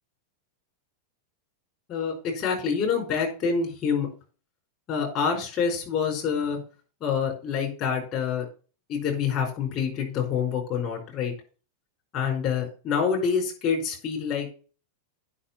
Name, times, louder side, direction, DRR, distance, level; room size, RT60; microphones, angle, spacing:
voice 1, 1.9-4.1 4.9-6.6 7.0-8.4 8.9-11.3 12.1-14.5, left 6 dB, 40° left, 1 dB, 4.9 m, -27 dB
9.9 x 5.9 x 6.2 m, 0.37 s
figure-of-eight pair, 90°, 0 cm